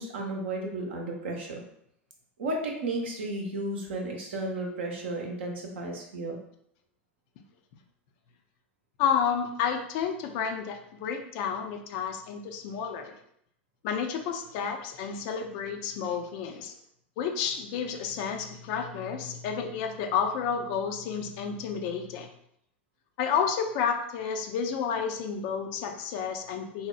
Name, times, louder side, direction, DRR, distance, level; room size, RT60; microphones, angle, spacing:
voice 1, 0.0-1.6 2.4-6.4, right 2 dB, 60° right, 1 dB, 0.7 m, -33 dB
voice 2, 9.0-13.2 13.8-16.7 17.2-22.3 23.2-26.9, left 7 dB, 45° left, 5 dB, 0.4 m, -31 dB
4.2 x 2.0 x 2.3 m, 0.72 s
figure-of-eight pair, 85°, 7 cm